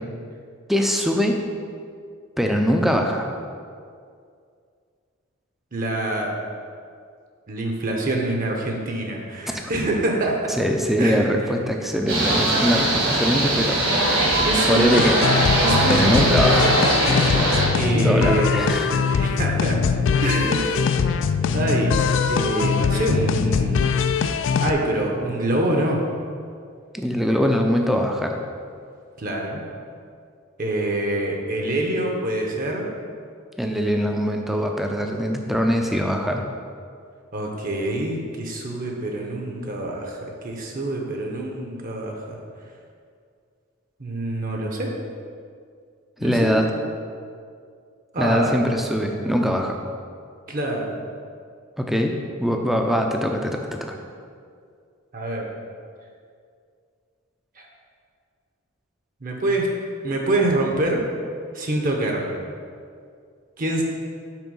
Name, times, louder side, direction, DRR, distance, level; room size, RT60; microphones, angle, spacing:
voice 1, 0.7-1.4 2.4-3.3 9.5-9.6 10.6-15.2 15.9-16.7 17.8-19.1 26.9-28.4 33.6-36.4 46.2-46.7 48.2-49.8 51.8-54.0, equal, ahead, 2 dB, 0.4 m, -22 dB
voice 2, 5.7-6.3 7.5-10.5 11.0-11.2 14.4-15.0 15.6-18.7 19.1-19.8 20.2-20.6 21.5-21.9 22.3-23.9 24.6-26.0 29.2-29.6 30.6-32.9 37.3-42.4 44.0-44.9 46.2-46.5 48.1-48.6 50.5-51.0 55.1-55.5 57.6-57.7 59.2-59.7 60.0-61.0 61.5-62.3 63.6-63.8, right 1 dB, 40° right, 0 dB, 0.7 m, -25 dB
sound 1, 12.1-17.7, right 1 dB, 65° right, 1.6 m, -20 dB
sound 2, 14.9-24.7, left 6 dB, 60° left, 0.3 m, -22 dB
6.0 x 4.1 x 5.4 m, 2.3 s
head